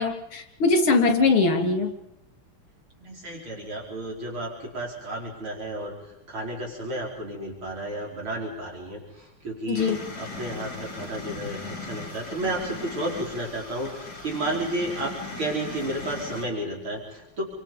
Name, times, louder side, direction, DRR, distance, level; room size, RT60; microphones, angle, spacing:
voice 1, 0.0-1.9 9.7-10.0, left 3 dB, 70° left, 4 dB, 4.0 m, -21 dB
voice 2, 3.0-9.9 10.2-17.4, right 1 dB, 70° right, -2 dB, 5.3 m, -32 dB
sound 1, 9.8-16.5, left 3 dB, 45° left, 6.1 m, -38 dB
29.0 x 24.5 x 5.4 m, 0.88 s
omnidirectional pair, 2.4 m